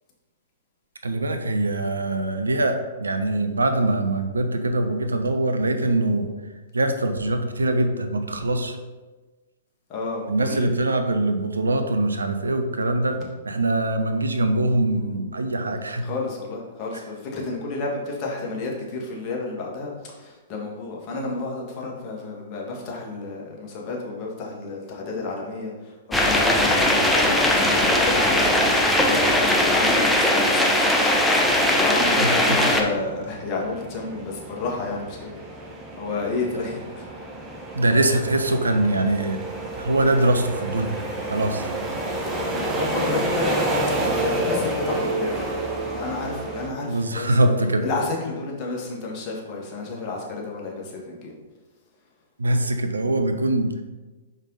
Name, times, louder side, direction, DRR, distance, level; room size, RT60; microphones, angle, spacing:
voice 1, 1.0-6.3 6.7-8.8 10.3-13.2 13.4-16.1 32.2-32.7 37.8-39.4 39.8-41.0 41.3-41.7 46.9-47.8 52.4-53.7, right 2 dB, 80° right, 6 dB, 0.7 m, -23 dB
voice 2, 9.9-10.7 16.0-19.9 20.2-27.3 27.8-28.4 29.0-31.2 31.7-35.3 35.9-37.0 42.7-43.5 44.2-45.3 46.0-47.5 47.8-51.3, left 3 dB, 35° left, -2 dB, 1.6 m, -31 dB
sound 1, 26.1-32.8, left 1 dB, 5° left, 0.8 m, -19 dB
sound 2, 30.9-46.7, right 1 dB, 15° right, 1.1 m, -30 dB
5.4 x 5.2 x 4.0 m, 1.2 s
figure-of-eight pair, 110°, 0 cm